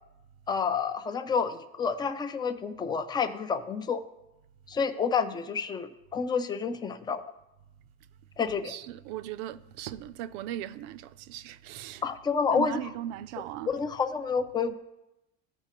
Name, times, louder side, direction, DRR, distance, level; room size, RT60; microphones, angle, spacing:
voice 1, 0.5-4.0 4.7-7.2 8.4-8.7 12.0-12.9 13.7-14.7, left 5 dB, 15° left, 0.3 m, -29 dB
voice 2, 8.7-12.0 12.5-13.7, right 12 dB, 65° right, 0.5 m, -38 dB
14.5 x 4.8 x 3.0 m
supercardioid pair, 135°, 33 cm